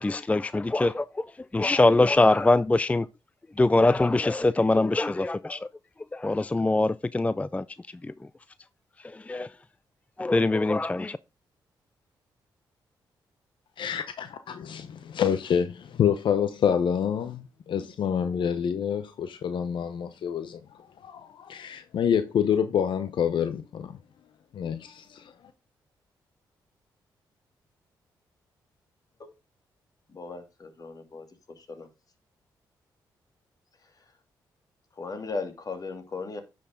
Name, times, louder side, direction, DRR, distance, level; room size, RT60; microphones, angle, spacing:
voice 1, 0.0-3.1 3.6-5.7 6.1-8.1 9.0-9.5 10.2-11.2, left 2 dB, 15° left, 0.4 m, -23 dB
voice 2, 13.8-20.6 21.0-23.9 24.5-25.3, left 8 dB, 70° left, 0.8 m, -27 dB
voice 3, 30.1-31.3 31.6-31.9 35.0-36.4, left 4 dB, 45° left, 2.6 m, -37 dB
10.0 x 6.2 x 3.7 m
supercardioid pair, 55°, 9 cm